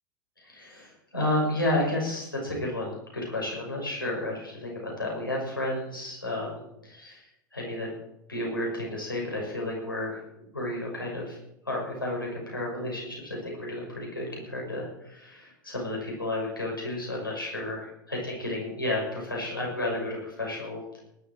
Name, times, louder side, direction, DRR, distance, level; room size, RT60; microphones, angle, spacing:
voice 1, 0.4-7.2 7.5-7.9 8.3-10.2 10.5-11.4 11.6-21.0, left 1 dB, 85° left, -2 dB, 6.3 m, -32 dB
19.5 x 12.0 x 4.6 m, 0.81 s
figure-of-eight pair, 85°, 11 cm